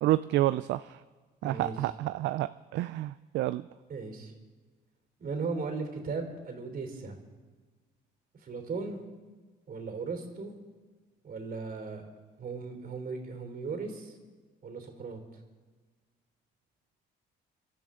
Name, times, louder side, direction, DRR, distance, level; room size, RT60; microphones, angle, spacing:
voice 1, 0.0-1.0 1.4-3.6, right 15 dB, 75° right, 13 dB, 0.4 m, -29 dB
voice 2, 1.4-1.7 3.9-4.3 5.2-7.2 8.4-9.0 9.7-10.5 11.2-12.0 12.4-14.2 14.6-15.2, right 4 dB, 50° right, 5 dB, 3.4 m, -37 dB
26.5 x 12.0 x 3.7 m, 1.4 s
supercardioid pair, 80°, 19 cm